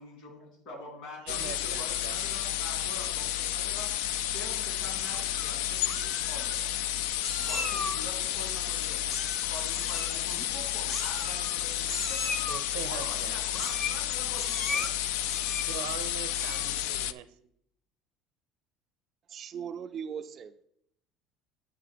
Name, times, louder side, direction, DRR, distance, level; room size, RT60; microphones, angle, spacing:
voice 1, 0.0-3.9 4.3-6.7 7.4-9.0 9.4-12.5 12.8-15.1, left 2 dB, 60° left, 0 dB, 3.5 m, -45 dB
voice 2, 1.2-2.2 12.5-13.4 15.7-17.3, right 10 dB, 75° right, 11 dB, 0.7 m, -41 dB
sound 1, 1.3-17.1, left 12 dB, 85° left, 0.4 m, -31 dB
Meow, 5.1-5.5 5.9-6.6 7.2-8.0 9.1-9.5 9.7-10.2 10.9-11.6 11.9-12.6 13.5-14.0 14.4-14.9 15.3-15.9 16.3-16.7, left 3 dB, 30° left, 0.8 m, -36 dB
voice 3, 19.3-20.6, right 7 dB, 30° right, 9 dB, 0.3 m, -39 dB
8.9 x 3.6 x 6.7 m, 0.72 s
cardioid pair, 175°, 0 cm